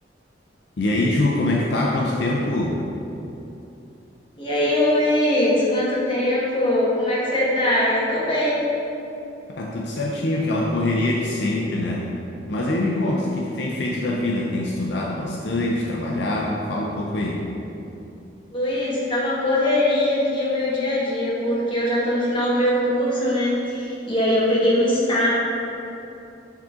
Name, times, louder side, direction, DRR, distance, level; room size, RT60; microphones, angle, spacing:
voice 1, 0.8-2.8 9.5-12.1 12.5-17.4, left 1 dB, 65° left, -3 dB, 0.5 m, -24 dB
voice 2, 4.4-8.6 18.5-25.3, left 1 dB, 30° left, -7 dB, 1.4 m, -21 dB
7.3 x 3.8 x 3.7 m, 2.8 s
head